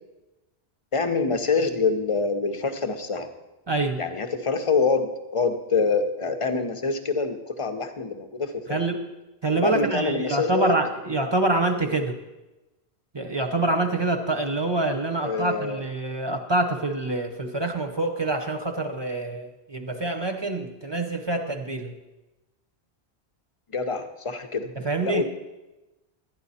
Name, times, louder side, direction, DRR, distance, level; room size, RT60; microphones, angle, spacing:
voice 1, 0.9-3.3 4.0-8.8 9.6-10.7 15.2-15.8 23.7-24.7 25.0-25.2, left 4 dB, 35° left, 8 dB, 0.7 m, -25 dB
voice 2, 3.7-4.0 8.7-9.1 9.4-12.2 13.1-21.9 24.8-25.2, right 2 dB, 25° right, 3 dB, 0.8 m, -26 dB
12.0 x 9.6 x 4.2 m, 1.0 s
omnidirectional pair, 1.1 m